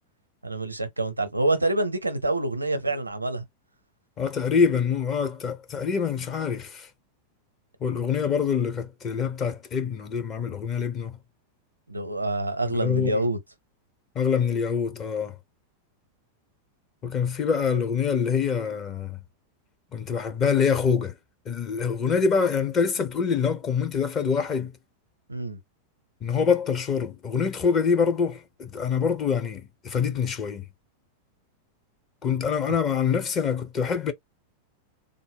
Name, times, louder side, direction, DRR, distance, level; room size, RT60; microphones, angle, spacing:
voice 1, 0.4-3.4 11.9-13.4 25.3-25.6, right 2 dB, 85° right, 0.6 m, -26 dB
voice 2, 4.2-6.9 7.8-11.2 12.7-13.2 14.1-15.4 17.0-19.2 19.9-21.1 21.5-24.7 26.2-30.7 32.2-34.1, left 6 dB, 30° left, 0.8 m, -25 dB
3.5 x 2.1 x 3.5 m
figure-of-eight pair, 90°, 0 cm